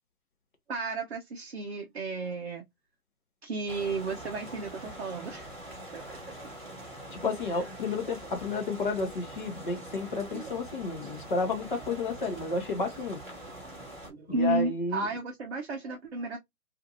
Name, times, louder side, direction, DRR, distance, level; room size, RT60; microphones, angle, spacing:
voice 1, 0.7-2.7 3.4-5.5 5.9-6.2 10.3-10.5 14.1-16.4, right 3 dB, 45° right, 0.6 m, -33 dB
sound 1, 3.7-14.1, right 1 dB, ahead, 0.9 m, -44 dB
voice 2, 7.1-13.2 14.3-15.1, left 3 dB, 35° left, 0.7 m, -31 dB
2.5 x 2.5 x 2.7 m
figure-of-eight pair, 155°, 44 cm